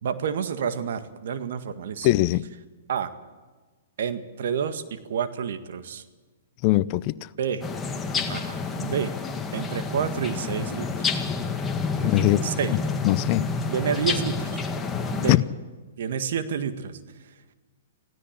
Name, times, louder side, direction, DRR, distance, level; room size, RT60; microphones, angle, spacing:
voice 1, 0.0-2.1 2.9-3.1 4.0-6.0 7.4-7.6 8.3-9.2 9.5-11.2 12.4-12.7 13.7-14.6 15.1-15.4 16.0-17.0, right 7 dB, 65° right, 1.8 m, -29 dB
voice 2, 2.0-2.4 6.6-7.2 12.0-12.8 13.0-13.5 15.3-15.4, left 17 dB, 40° left, 0.6 m, -21 dB
sound 1, 7.6-15.4, left 4 dB, 15° left, 1.9 m, -29 dB
26.0 x 16.5 x 7.5 m
hypercardioid pair, 125°, 0 cm